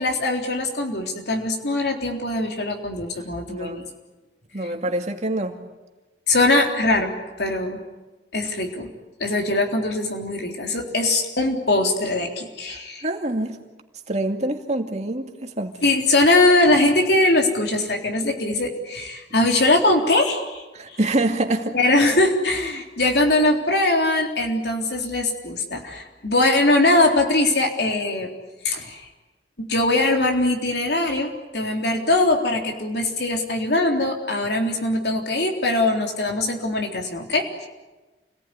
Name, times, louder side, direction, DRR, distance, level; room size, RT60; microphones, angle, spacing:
voice 1, 0.0-3.9 6.3-7.8 8.3-8.9 9.2-13.1 15.8-21.0 21.7-28.3 28.6-29.1 29.7-37.7, left 2 dB, 65° left, 1 dB, 3.7 m, -21 dB
voice 2, 3.5-3.8 4.5-5.6 12.7-13.6 14.1-15.7 20.7-21.8, right 1 dB, 40° right, 4 dB, 2.4 m, -26 dB
29.0 x 19.0 x 9.8 m, 1.2 s
head